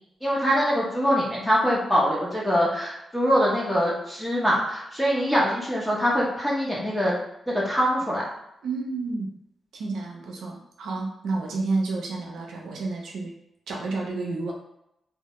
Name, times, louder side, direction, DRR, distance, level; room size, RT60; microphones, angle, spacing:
voice 1, 0.2-7.2 7.5-8.2, equal, 5° left, -5 dB, 0.7 m, -23 dB
voice 2, 8.6-9.3 9.7-13.3 13.7-14.5, right 3 dB, 85° right, -1 dB, 0.5 m, -30 dB
2.1 x 2.1 x 2.8 m, 0.82 s
cardioid pair, 70°, 0 cm